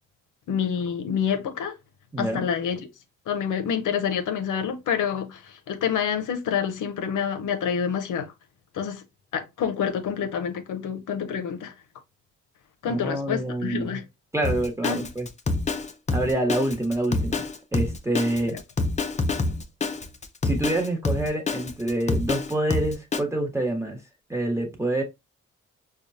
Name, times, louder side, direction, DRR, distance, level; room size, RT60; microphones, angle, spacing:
voice 1, 0.5-1.8 2.2-2.9 3.3-8.3 8.7-9.0 9.3-11.7 12.8-14.0 14.8-15.1 18.5-18.6, left 7 dB, 80° left, 0.6 m, -27 dB
voice 2, 2.1-2.4 12.8-13.9 14.3-15.3 16.1-17.4 17.7-18.6 20.4-24.0 24.3-25.0, right 1 dB, 10° right, 1.2 m, -26 dB
Drum kit, 14.4-23.2, left 3 dB, 25° left, 0.5 m, -27 dB
5.0 x 2.3 x 2.5 m
cardioid pair, 85°, 31 cm